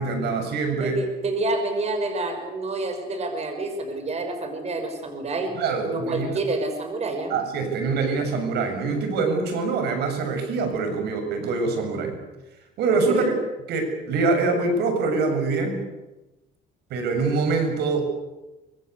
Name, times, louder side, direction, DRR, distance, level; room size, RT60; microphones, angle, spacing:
voice 1, 0.0-1.0 5.6-6.4 7.3-12.2 12.8-13.4 13.7-15.8 16.9-18.1, right 4 dB, 75° right, 6 dB, 7.3 m, -24 dB
voice 2, 0.7-5.6 5.8-7.4 13.1-13.3, right 2 dB, 40° right, 7 dB, 5.9 m, -28 dB
24.5 x 23.5 x 8.2 m, 1.0 s
cardioid pair, 110°, 17 cm